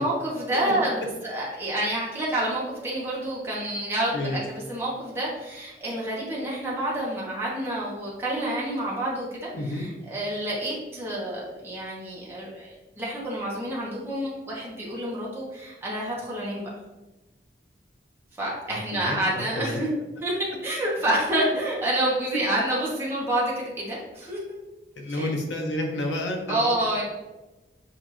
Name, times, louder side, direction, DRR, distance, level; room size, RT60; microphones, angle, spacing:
voice 1, 0.0-16.7 18.4-19.9 20.2-20.3 20.6-24.4 25.1-25.3 26.5-27.0, right 1 dB, 15° right, -6 dB, 1.0 m, -28 dB
voice 2, 9.5-9.9 18.7-19.8 25.0-27.0, left 1 dB, 80° left, 2 dB, 0.9 m, -30 dB
6.5 x 2.5 x 2.9 m, 1.1 s
head